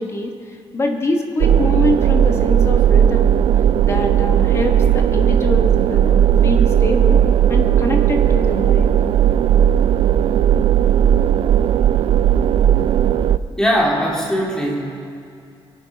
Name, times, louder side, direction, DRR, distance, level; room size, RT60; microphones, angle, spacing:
voice 1, 0.0-3.4 3.8-7.2 7.5-8.9, left 2 dB, 25° left, 3 dB, 1.4 m, -24 dB
sound 1, 1.4-13.4, right 9 dB, 65° right, 0.4 m, -15 dB
voice 2, 13.6-14.9, equal, 5° left, -3 dB, 2.6 m, -19 dB
23.0 x 9.2 x 5.8 m, 2.4 s
wide cardioid pair, 170°, 10 cm